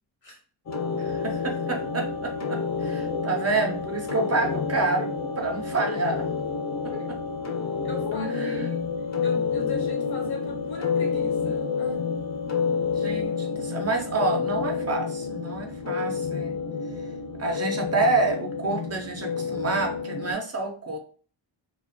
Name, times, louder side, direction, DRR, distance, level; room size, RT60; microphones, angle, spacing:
sound 1, 0.7-20.3, left 5 dB, 40° left, 0.5 m, -29 dB
voice 1, 1.0-6.3 8.4-8.7 13.0-16.6 17.4-21.0, right 3 dB, 35° right, 3 dB, 0.4 m, -28 dB
voice 2, 7.8-8.9 9.2-12.1, left 4 dB, 80° left, -1 dB, 1.1 m, -37 dB
2.3 x 2.2 x 2.5 m, 0.41 s
wide cardioid pair, 100°, 46 cm